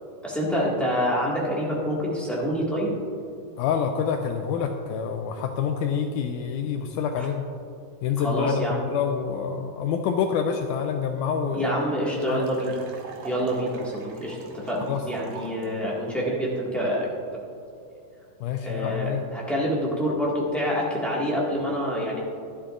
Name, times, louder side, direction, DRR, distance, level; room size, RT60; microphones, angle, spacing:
voice 1, 0.2-2.9 7.2-7.3 8.2-8.8 11.5-12.8 13.2-17.1 18.6-22.2, equal, ahead, -6 dB, 0.5 m, -27 dB
voice 2, 3.6-7.4 8.0-11.7 12.3-12.5 14.9-15.0 18.4-19.3, left 7 dB, 80° left, 5 dB, 2.0 m, -27 dB
sound 1, 10.9-11.0 11.2-11.3 11.5-15.6, right 4 dB, 65° right, 2.1 m, -43 dB
12.5 x 12.5 x 2.5 m, 2.5 s
omnidirectional pair, 3.8 m